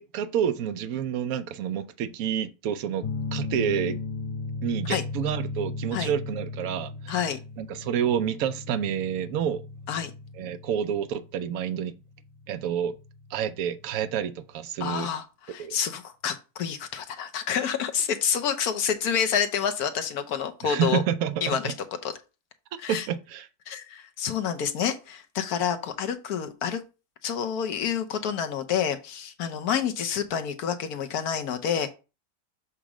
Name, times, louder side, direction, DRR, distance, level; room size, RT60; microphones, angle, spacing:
voice 1, 0.0-4.0 4.6-7.2 7.6-9.6 10.4-11.9 12.5-12.9 13.3-15.1 15.6-15.8 20.6-21.8 22.9-23.5, right 9 dB, 70° right, 1.0 m, -29 dB
sound 1, 3.0-14.2, left 4 dB, 40° left, 0.4 m, -37 dB
voice 2, 7.1-7.4 9.9-10.1 14.8-21.0 21.4-21.7 22.0-22.1 22.8-23.1 23.7-26.8 27.2-31.9, left 8 dB, 80° left, 1.3 m, -28 dB
7.3 x 3.0 x 4.9 m
omnidirectional pair, 1.6 m